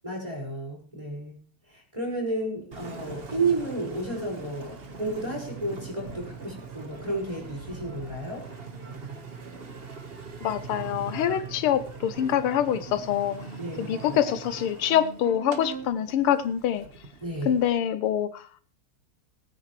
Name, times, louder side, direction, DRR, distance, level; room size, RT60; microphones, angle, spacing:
voice 1, 0.0-1.4 1.7-8.5 13.6-14.2 17.2-17.6, right 2 dB, 15° right, -1 dB, 5.5 m, -32 dB
Engine, 2.7-17.7, right 4 dB, 30° right, 1.3 m, -41 dB
voice 2, 10.4-13.4 13.8-16.8 17.4-18.5, left 10 dB, 80° left, 12 dB, 1.6 m, -25 dB
20.5 x 9.6 x 3.2 m, 0.40 s
omnidirectional pair, 2.4 m